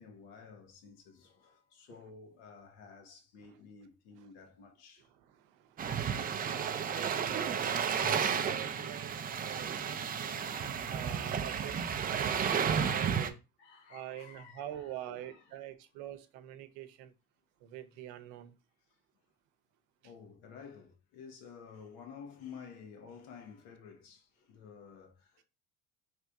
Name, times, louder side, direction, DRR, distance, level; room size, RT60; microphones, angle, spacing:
voice 1, 0.0-5.1 6.9-7.0 8.0-8.7 13.6-15.4 20.0-25.4, left 6 dB, 85° left, 1.2 m, -51 dB
voice 2, 5.0-10.6 10.9-11.8 12.1-13.4 13.9-17.1 17.6-18.6, right 12 dB, 85° right, 0.7 m, -45 dB
sound 1, 5.8-13.3, right 7 dB, 25° right, 0.3 m, -32 dB
3.3 x 2.6 x 4.5 m
cardioid pair, 110°, 41 cm